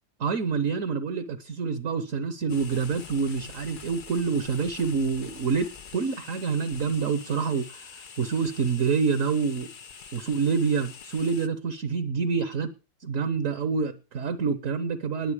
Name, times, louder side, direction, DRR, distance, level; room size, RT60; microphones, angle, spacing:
voice 1, 0.2-7.8 8.2-9.7 10.1-12.7 13.0-15.3, right 5 dB, 50° right, 12 dB, 1.2 m, -27 dB
sound 1, 2.5-11.5, left 6 dB, 60° left, 0.5 m, -45 dB
20.0 x 7.8 x 5.0 m, 0.34 s
omnidirectional pair, 2.1 m